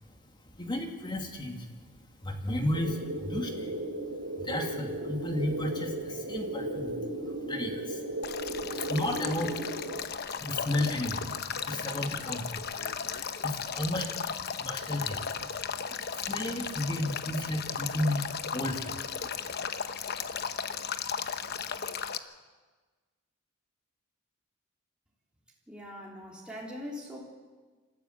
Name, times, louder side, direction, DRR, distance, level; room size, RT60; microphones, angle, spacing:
voice 1, 0.6-1.7 2.2-3.7 4.3-8.0 8.7-9.6 10.4-11.3 11.6-12.6 13.4-14.2 14.6-15.2 16.1-19.0 19.6-19.7, left 1 dB, 25° left, 3 dB, 2.5 m, -33 dB
sound 1, 2.7-10.0, right 1 dB, 85° right, 2.8 m, -35 dB
Male speech man speaking / Stream / Trickle dribble, 8.2-22.2, left 7 dB, 50° left, 1.0 m, -35 dB
voice 2, 25.7-27.3, left 1 dB, 5° right, -4 dB, 3.3 m, -42 dB
26.5 x 14.5 x 8.1 m, 1.3 s
head